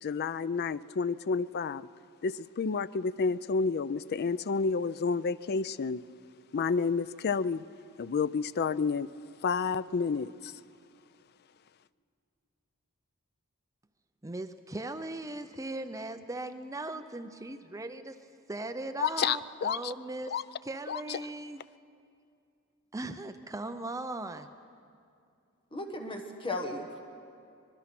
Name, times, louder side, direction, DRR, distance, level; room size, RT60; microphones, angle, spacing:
voice 1, 0.0-1.9 2.2-6.0 6.5-7.7 8.0-9.1 9.4-10.5 19.0-19.9 20.3-20.4 20.9-21.2, left 5 dB, 50° left, 0.4 m, -30 dB
voice 2, 14.2-18.2 18.5-21.6 22.9-24.5, right 2 dB, 15° right, 0.6 m, -38 dB
voice 3, 25.7-27.1, left 2 dB, 25° left, 1.4 m, -36 dB
24.5 x 21.0 x 6.0 m
head